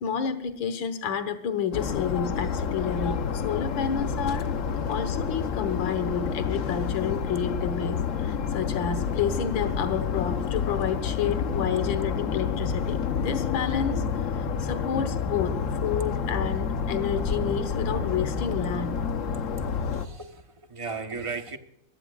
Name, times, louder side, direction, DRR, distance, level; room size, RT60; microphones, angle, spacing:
voice 1, 0.0-4.5 4.9-14.3 14.6-19.0, left 7 dB, 80° left, 10 dB, 1.9 m, -30 dB
sound 1, 1.7-20.1, left 6 dB, 55° left, 0.9 m, -29 dB
voice 2, 19.3-21.6, right 4 dB, 25° right, 6 dB, 0.7 m, -37 dB
21.5 x 14.5 x 2.4 m, 0.75 s
omnidirectional pair, 2.1 m